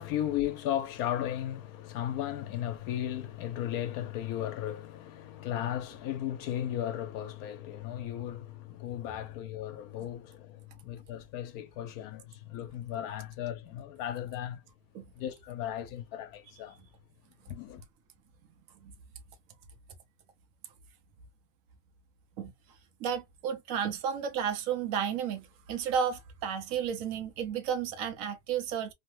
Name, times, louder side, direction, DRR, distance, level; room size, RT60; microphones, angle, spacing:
voice 1, 0.0-14.6 15.1-16.8 17.5-17.8, left 11 dB, 80° left, 1.1 m, -35 dB
voice 2, 23.0-28.9, right 8 dB, 70° right, 1.1 m, -32 dB
3.2 x 2.1 x 3.0 m
omnidirectional pair, 1.5 m